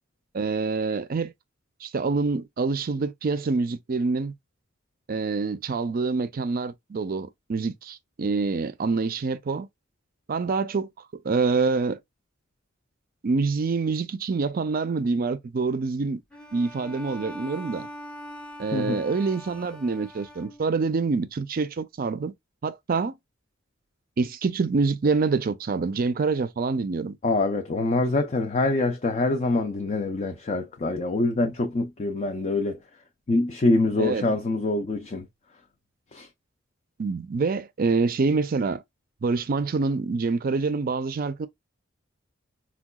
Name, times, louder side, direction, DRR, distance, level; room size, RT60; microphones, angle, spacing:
voice 1, 0.3-1.3 1.8-4.3 5.1-9.7 10.3-10.9 11.2-12.0 13.2-16.2 16.5-17.9 18.6-22.3 22.6-23.2 24.2-27.2 34.0-34.2 37.0-38.8 39.2-41.5, right 4 dB, 45° right, 0.4 m, -26 dB
Bowed string instrument, 16.3-20.9, equal, 5° left, 0.7 m, -42 dB
voice 2, 27.2-32.8 33.3-35.3 36.1-36.3, left 2 dB, 35° left, 0.5 m, -25 dB
4.5 x 2.3 x 2.2 m
head